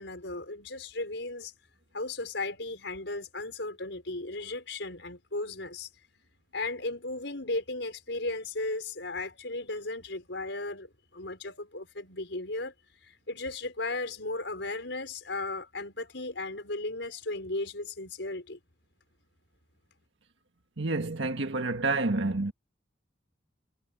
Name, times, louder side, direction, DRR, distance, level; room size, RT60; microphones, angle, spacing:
voice 1, 0.0-1.5 1.9-5.9 6.5-12.7 13.0-18.6, left 2 dB, 75° left, 5.2 m, -35 dB
voice 2, 20.8-22.5, right 2 dB, 85° right, 1.6 m, -28 dB
head